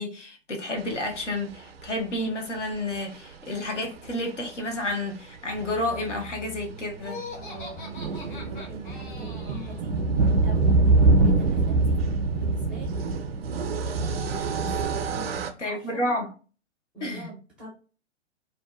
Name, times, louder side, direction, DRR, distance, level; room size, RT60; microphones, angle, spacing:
voice 1, 0.0-7.2 15.6-16.3 17.0-17.3, left 1 dB, 80° left, 0.9 m, -30 dB
sound 1, 2.7-2.8 4.1-4.2 4.4-4.5 4.7-4.9 7.4-15.5, right 3 dB, 60° right, 0.4 m, -24 dB
sound 2, 5.5-12.1, equal, 65° left, 1.5 m, -44 dB
Laughter, 7.0-9.8, left 3 dB, 45° left, 0.8 m, -41 dB
voice 2, 7.4-10.0 10.4-12.0 12.3-13.0 14.5-16.1 16.9-17.7, right 3 dB, 5° right, 0.4 m, -43 dB
2.6 x 2.2 x 2.3 m
figure-of-eight pair, 115°, 36 cm